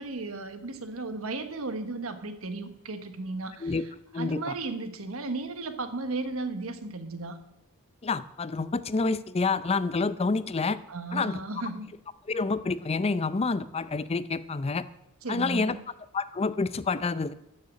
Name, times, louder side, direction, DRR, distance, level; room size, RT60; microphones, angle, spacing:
voice 1, 0.0-3.8 4.2-7.4 10.9-11.9 15.2-15.8, right 3 dB, 80° right, 9 dB, 1.3 m, -35 dB
voice 2, 4.1-4.5 8.0-10.8 11.1-11.4 12.3-14.9 15.3-15.8 16.1-17.4, left 4 dB, 30° left, 15 dB, 0.5 m, -28 dB
13.5 x 6.7 x 8.4 m, 0.86 s
head